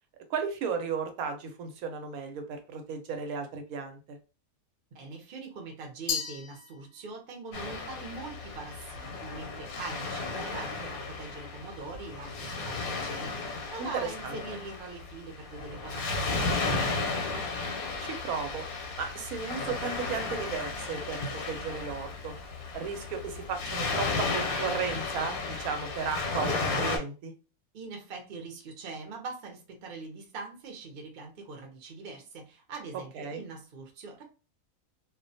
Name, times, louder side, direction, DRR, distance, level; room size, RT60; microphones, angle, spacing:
voice 1, 0.3-4.2 13.8-13.9 14.2-14.3 18.0-18.6 19.0-22.3 22.7-27.3 33.1-33.4, right 5 dB, 80° right, 6 dB, 1.1 m, -35 dB
voice 2, 4.9-17.5 27.7-34.2, right 4 dB, 50° right, 1 dB, 0.7 m, -43 dB
Glass, 6.1-7.3, left 7 dB, 60° left, 0.7 m, -35 dB
Waves surf, 7.5-27.0, left 3 dB, 90° left, 1.1 m, -34 dB
2.4 x 2.2 x 2.6 m, 0.32 s
omnidirectional pair, 1.5 m